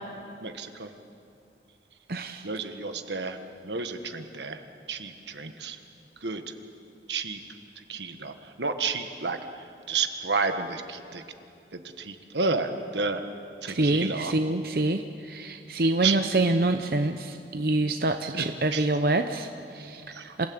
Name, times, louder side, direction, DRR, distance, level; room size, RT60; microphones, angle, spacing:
voice 1, 0.4-0.9 2.4-4.6 4.9-5.8 6.2-6.5 7.1-7.4 7.7-11.2 11.7-13.2 13.6-14.3 16.0-16.2 18.3-18.5 18.7-18.9 20.1-20.5, right 4 dB, 85° right, 7 dB, 1.5 m, -31 dB
voice 2, 2.1-2.5 13.7-20.5, right 2 dB, 55° right, 7 dB, 0.8 m, -26 dB
27.5 x 16.5 x 8.8 m, 2.5 s
head